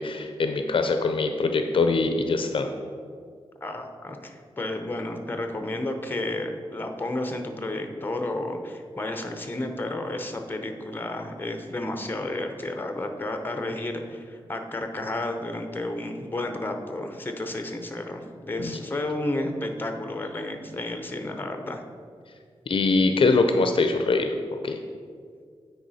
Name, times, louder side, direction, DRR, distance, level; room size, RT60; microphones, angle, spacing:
voice 1, 0.0-2.7 18.6-18.8 22.7-24.3 24.6-24.8, left 3 dB, 60° left, 6 dB, 0.5 m, -23 dB
voice 2, 3.6-21.8, left 1 dB, 20° left, 5 dB, 0.7 m, -32 dB
9.2 x 4.9 x 4.1 m, 2.1 s
wide cardioid pair, 95°, 10 cm